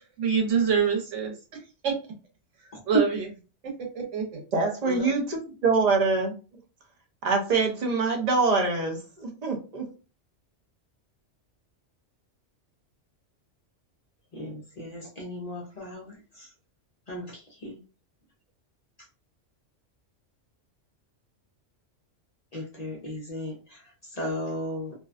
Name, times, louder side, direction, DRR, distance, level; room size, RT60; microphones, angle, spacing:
voice 1, 0.2-1.3 1.8-2.0 2.9-3.3 3.9-4.4, right 6 dB, 85° right, 1.1 m, -25 dB
voice 2, 4.5-5.4 5.6-6.3 7.2-9.9, right 4 dB, 50° right, 0.5 m, -24 dB
voice 3, 14.3-16.5 17.1-17.8 22.5-23.8 24.1-24.9, left 1 dB, 45° left, 0.5 m, -36 dB
2.5 x 2.1 x 2.4 m
omnidirectional pair, 1.2 m